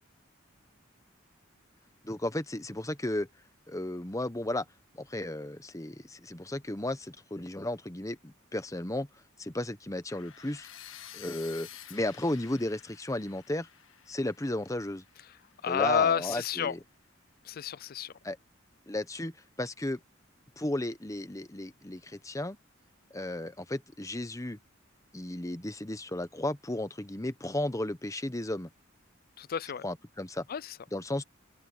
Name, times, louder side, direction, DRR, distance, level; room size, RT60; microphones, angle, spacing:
voice 1, 2.0-3.3 3.7-4.6 4.9-9.1 9.4-10.7 11.1-13.7 14.1-15.0 15.7-16.8 18.2-18.4 18.9-20.0 20.6-22.6 23.1-24.6 25.1-28.7 29.8-30.5 30.9-31.2, left 1 dB, 15° left, 1.0 m, -34 dB
sound 1, 10.1-16.0, left 10 dB, 75° left, 1.6 m, -51 dB
voice 2, 15.6-16.7 17.4-18.1 29.4-29.8 30.5-30.8, left 7 dB, 50° left, 0.4 m, -30 dB
open air
head